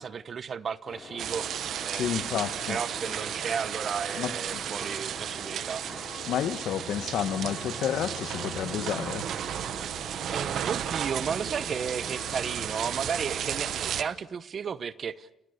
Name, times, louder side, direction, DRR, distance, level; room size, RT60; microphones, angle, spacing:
voice 1, 0.0-6.0 10.3-15.4, right 6 dB, 50° right, 1.0 m, -34 dB
sound 1, 0.9-14.1, left 4 dB, 45° left, 5.4 m, -45 dB
sound 2, 1.2-14.0, right 10 dB, 70° right, 1.2 m, -34 dB
voice 2, 1.9-2.8 4.1-4.6 6.3-9.3, left 10 dB, 75° left, 1.5 m, -30 dB
30.0 x 29.0 x 6.7 m
cardioid pair, 90°, 0 cm